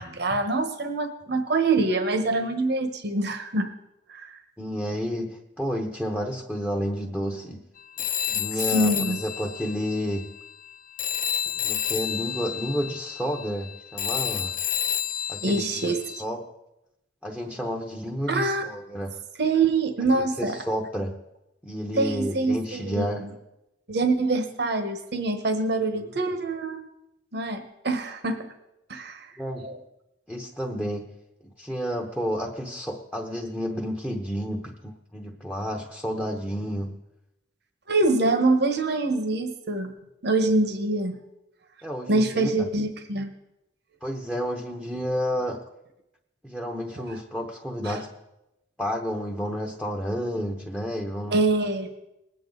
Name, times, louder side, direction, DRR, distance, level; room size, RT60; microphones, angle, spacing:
voice 1, 0.0-3.7 4.1-4.3 8.7-9.2 15.4-16.0 18.3-18.6 19.4-20.6 22.0-23.3 23.9-26.8 27.3-28.5 28.9-29.3 29.6-29.8 37.9-39.9 40.2-41.2 42.1-43.3 47.8-48.0 51.3-51.9, right 2 dB, 60° right, 7 dB, 1.2 m, -25 dB
voice 2, 4.6-7.6 8.3-10.3 11.6-14.5 15.3-15.9 16.2-16.5 17.2-19.2 20.1-21.2 21.6-23.2 26.0-26.1 29.4-29.7 30.3-31.1 31.4-36.9 41.8-42.7 44.0-45.6 46.4-48.1 48.8-51.4, equal, 5° left, 2 dB, 0.9 m, -31 dB
Telephone, 8.0-10.7 11.0-16.2, left 10 dB, 45° left, 0.5 m, -30 dB
20.5 x 8.8 x 3.9 m, 0.91 s
head